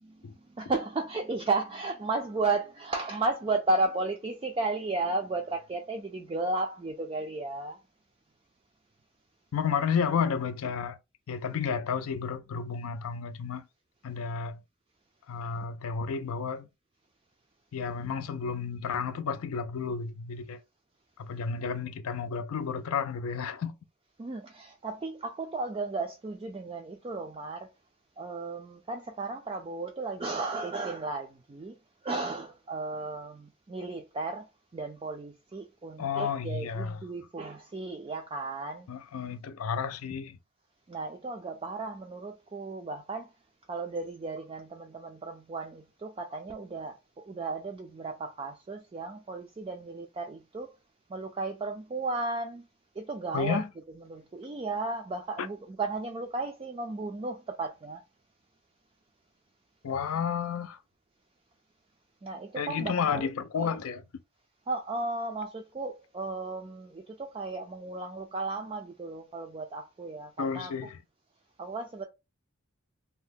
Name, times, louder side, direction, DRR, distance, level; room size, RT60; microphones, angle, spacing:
voice 1, 0.1-7.8 24.2-27.7 28.2-31.8 32.0-38.9 40.9-43.3 43.7-50.7 51.1-52.7 53.0-53.6 54.0-58.0 62.2-63.3 63.6-63.8 64.7-70.9 71.6-72.0, right 3 dB, 25° right, 0.3 m, -34 dB
voice 2, 9.5-11.0 11.3-13.6 14.0-14.6 15.3-16.7 17.7-20.6 21.2-23.7 36.0-37.0 38.9-40.4 53.3-53.7 55.4-55.5 59.8-60.8 62.6-64.0 70.4-71.0, left 6 dB, 75° left, 0.4 m, -31 dB
2.7 x 2.1 x 3.4 m
head